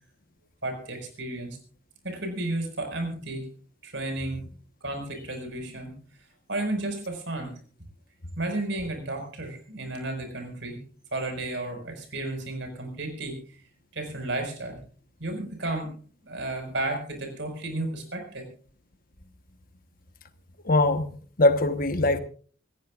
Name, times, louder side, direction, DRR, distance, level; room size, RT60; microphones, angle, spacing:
voice 1, 0.6-1.6 2.0-3.5 3.8-4.4 4.8-5.9 6.5-7.6 8.4-10.8 11.1-13.4 13.9-14.8 15.2-15.9 16.2-18.5, right 2 dB, 65° right, 5 dB, 5.4 m, -32 dB
voice 2, 20.6-22.2, left 2 dB, 45° left, 9 dB, 1.2 m, -22 dB
26.5 x 14.5 x 2.5 m, 0.40 s
head